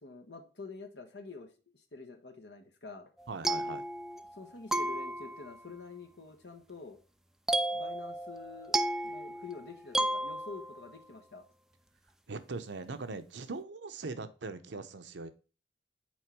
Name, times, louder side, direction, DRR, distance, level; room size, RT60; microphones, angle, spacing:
voice 1, 0.0-3.1 4.3-7.0 7.7-11.4, left 3 dB, 70° left, 5 dB, 1.3 m, -47 dB
sound 1, 3.2-4.4 4.7-5.6 7.5-10.9, right 1 dB, 5° right, 0.3 m, -33 dB
voice 2, 3.3-3.8 12.3-15.3, right 3 dB, 80° right, 9 dB, 0.7 m, -40 dB
6.3 x 4.4 x 4.6 m, 0.35 s
head